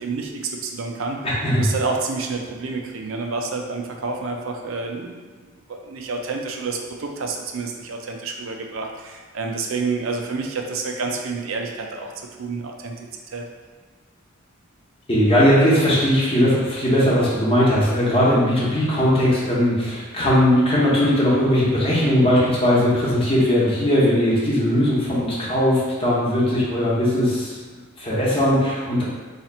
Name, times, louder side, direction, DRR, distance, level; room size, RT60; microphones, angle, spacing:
voice 1, 0.0-1.2 1.5-5.2 5.7-12.1 12.4-12.9 13.3-13.4, right 4 dB, 70° right, 2 dB, 0.5 m, -29 dB
voice 2, 1.2-1.7 15.1-27.6 28.0-29.0, equal, 30° left, -7 dB, 0.9 m, -19 dB
2.8 x 2.4 x 4.2 m, 1.4 s
head